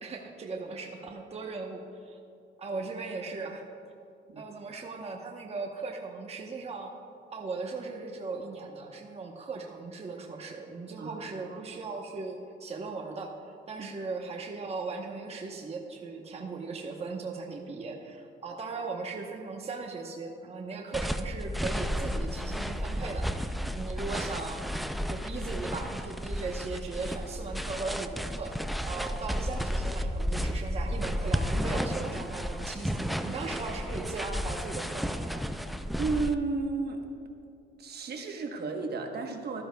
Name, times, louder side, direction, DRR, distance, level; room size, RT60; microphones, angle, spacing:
voice 1, 0.0-2.2 2.6-3.6 4.4-6.9 7.3-13.3 13.7-24.8 25.1-28.5 28.8-35.4, right 4 dB, 30° right, 1 dB, 0.9 m, -38 dB
voice 2, 11.0-11.6 13.8-13.9 36.0-37.0 37.8-39.6, right 4 dB, 55° right, 3 dB, 1.1 m, -33 dB
sound 1, 20.9-36.3, equal, ahead, 0.4 m, -33 dB
14.0 x 12.5 x 2.3 m, 2.5 s
cardioid pair, 90°, 20 cm